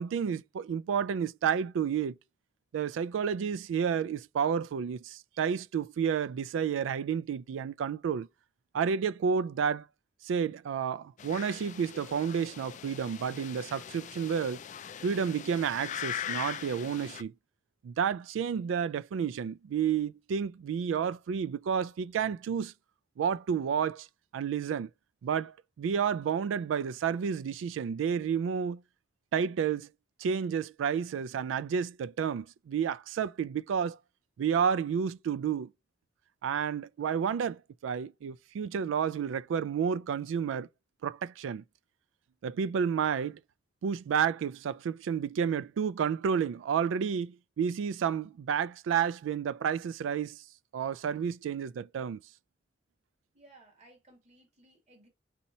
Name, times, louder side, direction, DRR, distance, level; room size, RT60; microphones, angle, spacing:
voice 1, 0.0-2.2 2.7-8.3 8.7-9.9 10.2-14.6 15.0-17.3 17.8-22.7 23.2-24.1 24.3-24.9 25.2-28.8 29.3-29.9 30.2-34.0 34.4-35.7 36.4-40.7 41.0-41.6 42.4-43.4 43.8-50.4 50.7-52.2, right 7 dB, 85° right, 0.3 m, -30 dB
sound 1, 11.2-17.2, left 9 dB, 40° left, 0.3 m, -41 dB
voice 2, 53.3-55.1, right 2 dB, 35° right, 2.3 m, -59 dB
4.2 x 4.2 x 2.7 m
head